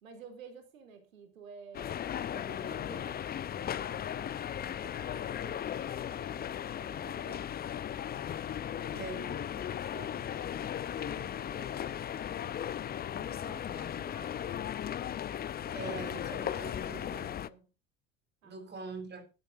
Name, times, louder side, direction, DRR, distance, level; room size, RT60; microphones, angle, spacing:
voice 1, 0.0-7.5 8.7-12.1 13.1-15.2 16.4-17.7 18.4-18.9, right 5 dB, 75° right, 3.1 m, -53 dB
sound 1, 1.7-17.5, left 10 dB, 25° left, 0.7 m, -37 dB
voice 2, 8.9-9.3 15.7-17.3 18.4-19.2, right 3 dB, 25° right, 3.9 m, -43 dB
19.0 x 12.0 x 2.6 m
figure-of-eight pair, 70°, 41 cm